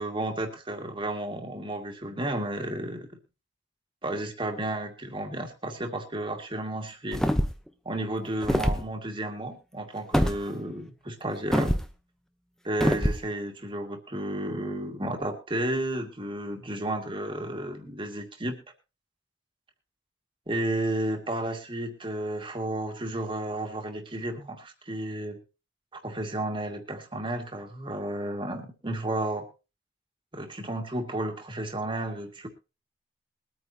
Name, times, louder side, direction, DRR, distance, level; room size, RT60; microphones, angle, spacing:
voice 1, 0.0-3.1 4.0-7.3 7.8-11.8 12.6-18.6 20.5-25.4 25.9-29.5 30.3-32.5, right 1 dB, 30° right, 4 dB, 2.2 m, -32 dB
sound 1, 7.1-7.7 8.4-8.8 10.1-10.4 11.5-11.9 12.8-13.2, equal, 5° left, 0.9 m, -24 dB
22.5 x 9.3 x 2.9 m, 0.31 s
head